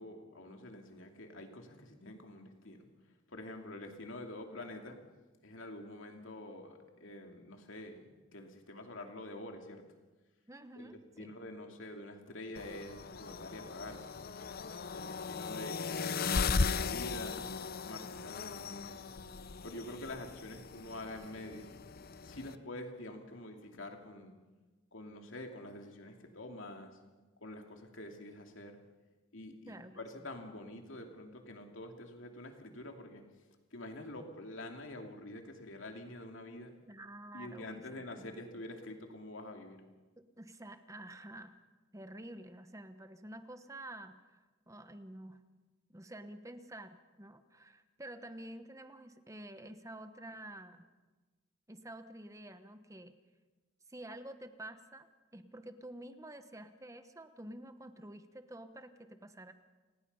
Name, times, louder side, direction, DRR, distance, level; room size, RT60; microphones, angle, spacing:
voice 1, 0.0-2.8 3.3-5.0 5.4-9.8 10.7-14.2 14.9-19.0 19.6-21.7 22.2-24.3 24.9-27.0 27.4-28.8 29.3-33.2 33.7-36.7 37.3-39.8, left 1 dB, 70° left, 3 dB, 2.8 m, -47 dB
voice 2, 10.5-11.3 29.7-30.0 36.8-38.6 40.2-41.5 41.9-45.4 45.9-50.9 51.7-53.2 53.9-59.5, right 1 dB, 15° right, 9 dB, 1.1 m, -49 dB
sound 1, 12.6-22.6, left 4 dB, 50° left, 0.7 m, -37 dB
29.0 x 19.0 x 5.6 m, 1.2 s
head